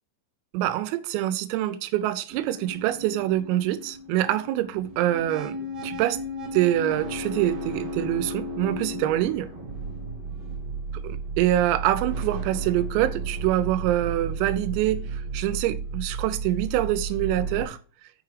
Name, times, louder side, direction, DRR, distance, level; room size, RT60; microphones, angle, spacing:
voice 1, 0.5-5.6 5.8-6.2 6.5-9.5 10.9-17.8, right 13 dB, 90° right, 3.4 m, -25 dB
sound 1, 2.3-17.6, right 2 dB, 35° right, 3.3 m, -34 dB
9.8 x 4.6 x 5.0 m
omnidirectional pair, 5.9 m